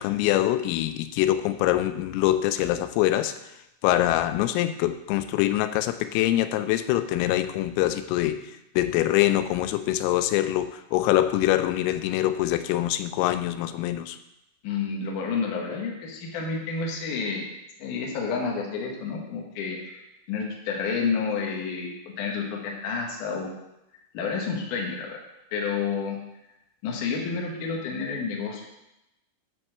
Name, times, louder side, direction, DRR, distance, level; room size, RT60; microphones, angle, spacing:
voice 1, 0.0-3.4 3.8-8.4 8.8-14.2, left 14 dB, 85° left, 11 dB, 3.2 m, -24 dB
voice 2, 14.6-17.5 17.8-21.9 22.2-23.5 24.1-25.2 25.5-26.2 26.8-28.6, left 5 dB, 65° left, -1 dB, 2.2 m, -30 dB
11.0 x 4.4 x 6.6 m, 0.90 s
omnidirectional pair, 5.8 m